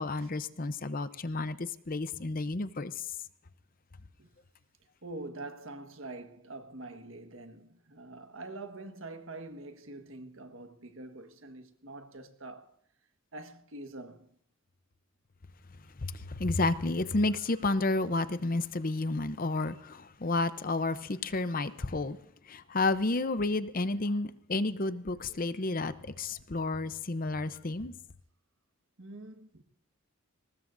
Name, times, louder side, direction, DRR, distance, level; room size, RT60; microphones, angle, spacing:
voice 1, 0.0-3.1 16.0-22.2 22.5-27.9, left 2 dB, 40° left, 0.7 m, -31 dB
voice 2, 5.0-12.7 13.3-14.3 28.0-28.1 29.0-29.6, right 2 dB, 65° right, 1.5 m, -45 dB
23.0 x 19.5 x 2.6 m
head